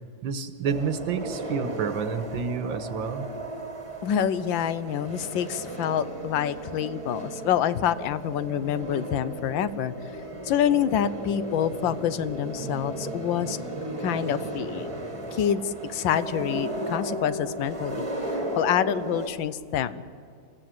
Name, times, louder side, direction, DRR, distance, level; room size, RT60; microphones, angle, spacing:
voice 1, 0.2-3.3, right 6 dB, 85° right, 10 dB, 1.9 m, -29 dB
sound 1, 0.6-19.3, right 1 dB, 20° right, 1.5 m, -35 dB
voice 2, 4.0-9.9 10.4-13.6 14.0-14.9 15.3-18.1 18.5-20.0, left 9 dB, 80° left, 15 dB, 1.5 m, -27 dB
26.5 x 15.5 x 7.8 m, 2.2 s
omnidirectional pair, 2.1 m